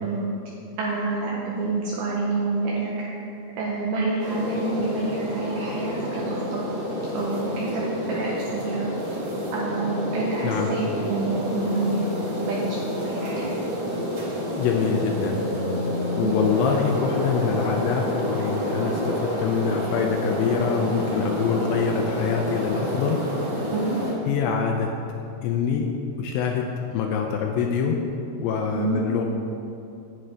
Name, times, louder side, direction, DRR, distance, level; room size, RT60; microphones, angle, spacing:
voice 1, 0.8-2.9 3.6-6.7 7.1-8.9 9.5-12.0 12.4-13.5 16.2-16.3 23.7-24.0 28.7-29.0, right 3 dB, 80° right, -4 dB, 2.1 m, -28 dB
sound 1, 4.2-24.1, equal, 60° right, 3.0 m, -28 dB
voice 2, 14.6-15.4 16.2-23.2 24.3-24.9 25.4-25.9 26.2-28.0 28.4-29.2, left 6 dB, 85° left, 2 dB, 2.3 m, -25 dB
8.7 x 7.7 x 3.3 m, 2.6 s
omnidirectional pair, 4.3 m